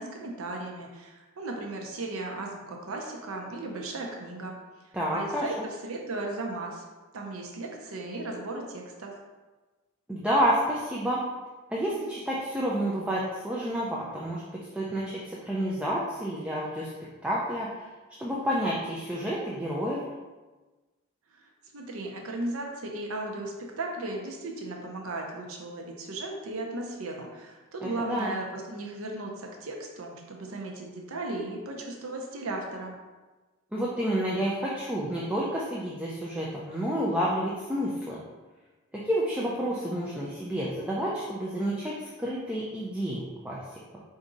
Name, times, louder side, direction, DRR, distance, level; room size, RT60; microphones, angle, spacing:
voice 1, 0.0-4.6 4.8-5.6 5.8-6.8 7.1-9.2 21.3-33.0, right 2 dB, 80° right, 1 dB, 0.7 m, -36 dB
voice 2, 4.9-5.5 10.1-11.2 11.7-16.9 17.2-17.9 18.2-20.0 27.8-28.3 33.7-38.2 38.9-43.8, equal, 5° right, -6 dB, 0.4 m, -29 dB
4.7 x 2.7 x 3.8 m, 1.2 s
head